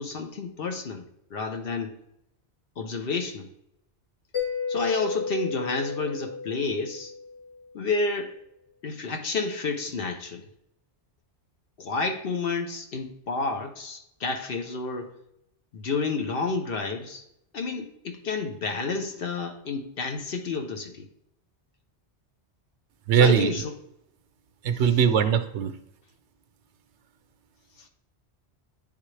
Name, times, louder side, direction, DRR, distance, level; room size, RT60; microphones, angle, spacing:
voice 1, 0.0-2.0 2.8-3.5 4.7-7.1 7.7-8.4 8.8-10.5 11.8-15.2 15.7-17.3 17.5-21.1 23.1-23.7 24.7-25.0 27.8-27.9, left 4 dB, 60° left, 0.9 m, -30 dB
Mallet percussion, 4.3-7.8, left 5 dB, 85° left, 1.9 m, -33 dB
voice 2, 23.1-23.5 24.6-25.7, right 7 dB, 80° right, 0.9 m, -20 dB
10.0 x 3.6 x 3.2 m
omnidirectional pair, 1.2 m